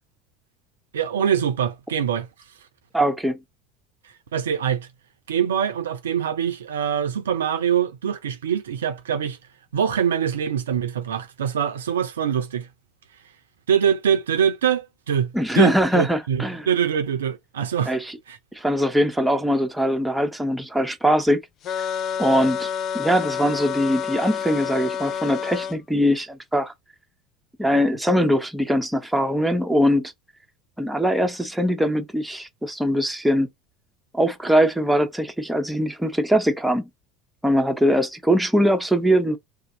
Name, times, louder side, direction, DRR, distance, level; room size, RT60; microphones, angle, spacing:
voice 1, 0.9-2.3 4.3-4.9 5.3-9.4 9.7-12.7 13.7-17.9 18.3-18.4, right 8 dB, 80° right, 0.5 m, -24 dB
voice 2, 2.9-3.4 15.3-16.7 17.9-18.2 18.5-21.4 22.2-22.7 22.9-26.7 27.6-30.1 30.8-33.5 34.1-36.9 37.4-39.4, equal, 5° right, 0.8 m, -21 dB
sound 1, 21.6-25.8, left 8 dB, 45° left, 0.4 m, -28 dB
2.6 x 2.4 x 3.8 m
figure-of-eight pair, 70°, 0 cm